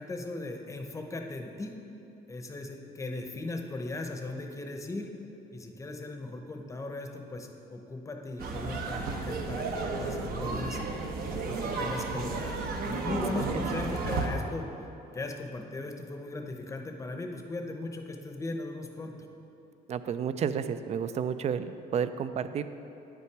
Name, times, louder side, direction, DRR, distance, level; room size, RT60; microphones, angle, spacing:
voice 1, 0.0-1.7 2.3-5.1 5.5-10.8 11.4-14.7 15.1-19.1, left 2 dB, 20° left, 4 dB, 0.7 m, -38 dB
sound 1, 8.4-14.3, right 3 dB, 60° right, 0.9 m, -33 dB
voice 2, 19.9-22.7, right 7 dB, 40° right, 12 dB, 0.4 m, -31 dB
9.0 x 5.9 x 4.6 m, 2.9 s
cardioid pair, 110°, 17 cm